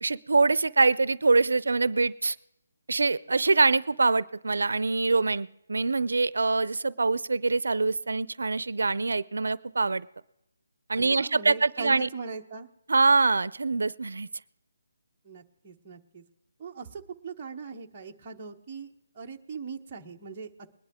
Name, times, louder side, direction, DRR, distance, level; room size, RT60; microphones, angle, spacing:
voice 1, 0.0-2.4 2.9-10.1 10.9-12.1 12.9-14.3, right 3 dB, 80° right, 19 dB, 0.5 m, -24 dB
voice 2, 10.9-12.7 15.2-16.2 16.6-20.7, right 5 dB, 15° right, -1 dB, 0.9 m, -40 dB
21.0 x 10.5 x 3.6 m, 0.85 s
hypercardioid pair, 175°, 0 cm